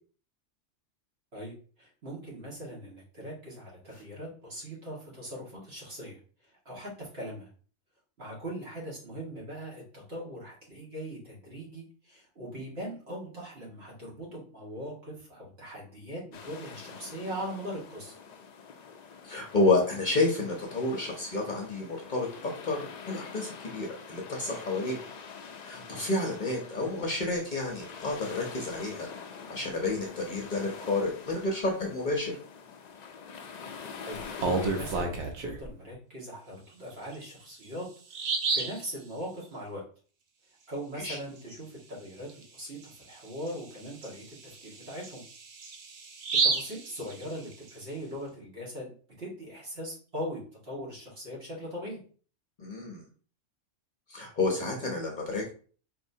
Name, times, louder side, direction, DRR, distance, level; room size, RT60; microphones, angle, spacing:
voice 1, 1.3-7.5 8.2-18.2 34.1-37.9 38.1-39.8 40.7-45.2 46.4-52.0, equal, 60° right, -5 dB, 1.8 m, -40 dB
sound 1, 16.3-35.1, left 6 dB, 65° left, 0.4 m, -45 dB
voice 2, 19.2-25.0 25.6-29.1 29.5-32.3 41.0-41.2 52.6-53.0 54.1-55.5, left 2 dB, 45° left, 0 dB, 0.8 m, -30 dB
Bird vocalization bird call bird song, 34.2-35.7 37.1-37.2 37.7-37.8 38.1-38.8 42.3-42.4 42.8-42.9 43.5-47.7, right 4 dB, 75° right, 1.0 m, -31 dB
4.3 x 3.1 x 2.7 m, 0.42 s
omnidirectional pair, 1.2 m